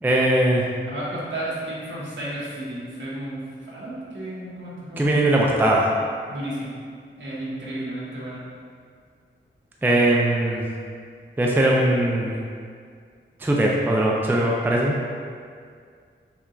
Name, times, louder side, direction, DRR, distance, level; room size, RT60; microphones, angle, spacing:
voice 1, 0.0-0.7 5.0-5.9 9.8-10.6 11.4-12.4 13.4-15.0, right 1 dB, 10° right, -2 dB, 0.4 m, -20 dB
voice 2, 0.9-5.1 6.3-6.8 7.2-8.4, right 1 dB, 65° right, -7 dB, 1.2 m, -33 dB
5.6 x 2.4 x 3.0 m, 2.1 s
wide cardioid pair, 130°, 20 cm